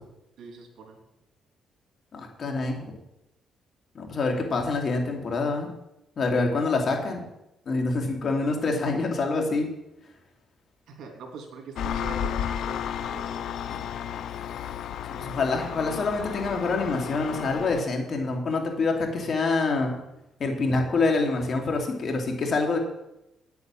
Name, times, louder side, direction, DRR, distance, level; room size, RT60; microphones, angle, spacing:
voice 1, 0.4-1.0 10.9-13.6, right 4 dB, 75° right, 2 dB, 3.1 m, -43 dB
voice 2, 2.1-2.8 3.9-5.7 6.2-7.3 7.7-9.7 15.2-19.9 20.4-22.8, left 3 dB, 50° left, 2 dB, 2.7 m, -26 dB
Engine, 11.8-17.8, left 9 dB, 70° left, 0.5 m, -33 dB
9.5 x 8.3 x 7.6 m, 0.87 s
cardioid pair, 100°, 0 cm